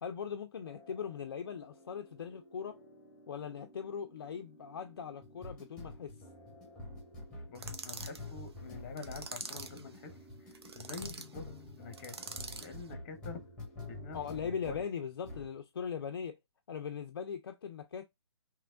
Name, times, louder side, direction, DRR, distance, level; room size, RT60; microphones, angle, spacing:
voice 1, 0.0-2.8 3.3-6.1 14.1-16.3 16.7-18.0, left 7 dB, 50° left, 0.5 m, -40 dB
sound 1, 0.6-14.9 15.2-15.5, left 2 dB, 5° left, 1.2 m, -49 dB
voice 2, 7.5-10.1 10.4-11.4 11.8-13.4 13.9-14.8, left 4 dB, 25° left, 0.9 m, -46 dB
sound 2, 7.5-8.2 9.0-9.8 10.5-11.3 11.9-12.7, right 5 dB, 60° right, 0.7 m, -44 dB
3.3 x 3.1 x 2.5 m
figure-of-eight pair, 145°, 15 cm